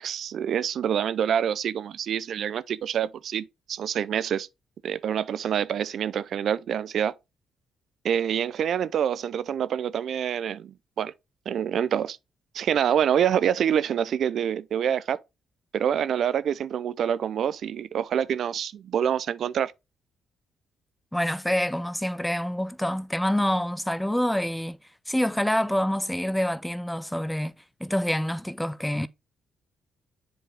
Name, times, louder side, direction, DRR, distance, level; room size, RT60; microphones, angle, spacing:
voice 1, 0.0-4.5 4.8-7.1 8.0-11.1 11.5-12.2 12.5-15.2 15.7-19.7, right 9 dB, 65° right, 0.4 m, -26 dB
voice 2, 21.1-24.8 25.1-27.5 27.8-29.1, equal, 5° left, 0.5 m, -26 dB
7.6 x 4.9 x 3.4 m
cardioid pair, 90°, 0 cm